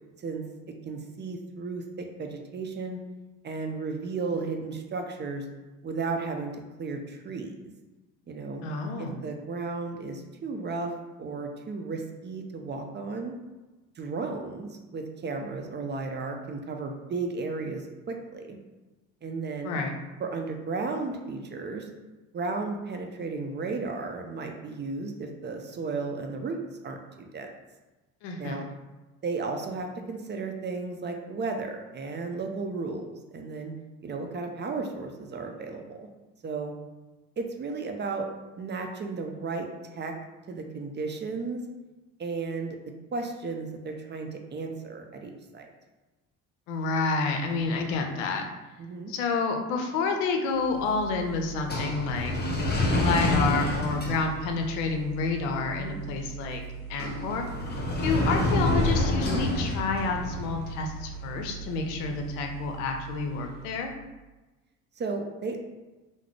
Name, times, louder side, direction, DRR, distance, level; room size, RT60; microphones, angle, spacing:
voice 1, 0.8-3.0 3.4-5.5 5.8-7.7 8.3-8.7 9.0-13.3 14.0-18.6 19.2-19.8 20.2-21.9 22.3-27.5 28.4-28.7 29.2-33.7 34.0-36.1 36.4-36.7 37.4-38.3 38.6-40.2 40.5-41.6 42.2-42.8 43.1-45.7 48.8-49.1 55.8-56.0 65.0-65.6, right 4 dB, 30° right, 4 dB, 0.5 m, -34 dB
voice 2, 8.6-9.2 19.6-19.9 28.2-28.6 46.7-48.4 49.1-52.3 53.0-56.6 56.9-57.4 58.0-63.9, left 4 dB, 75° left, 3 dB, 0.6 m, -29 dB
sound 1, 50.6-63.7, left 1 dB, 25° left, 1.0 m, -30 dB
3.8 x 2.0 x 3.1 m, 1.1 s
hypercardioid pair, 60°, 37 cm